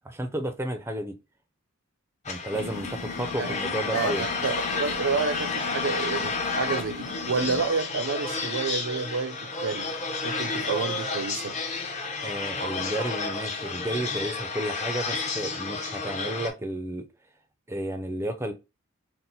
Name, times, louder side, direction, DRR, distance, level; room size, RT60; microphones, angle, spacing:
voice 1, 0.0-1.2 2.3-4.3 12.2-17.1 17.7-18.5, right 1 dB, 10° right, 0.5 m, -32 dB
sound 1, 2.2-16.5, left 4 dB, 30° left, 0.7 m, -31 dB
sound 2, 2.5-7.7, left 4 dB, 70° left, 0.6 m, -39 dB
voice 2, 3.9-9.9 10.2-11.6, right 5 dB, 65° right, 0.5 m, -29 dB
4.3 x 2.1 x 4.0 m
head